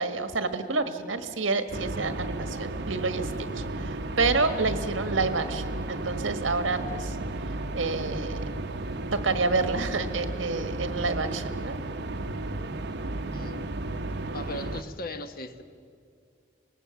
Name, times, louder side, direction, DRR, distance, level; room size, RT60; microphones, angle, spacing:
voice 1, 0.0-7.2 7.7-8.4 9.1-11.7, right 3 dB, 90° right, 8 dB, 1.5 m, -28 dB
sound 1, 1.7-14.8, right 2 dB, 60° right, 0.9 m, -33 dB
voice 2, 13.3-13.7 14.3-15.6, left 1 dB, 50° left, 8 dB, 1.1 m, -38 dB
24.5 x 20.0 x 7.0 m, 2.3 s
head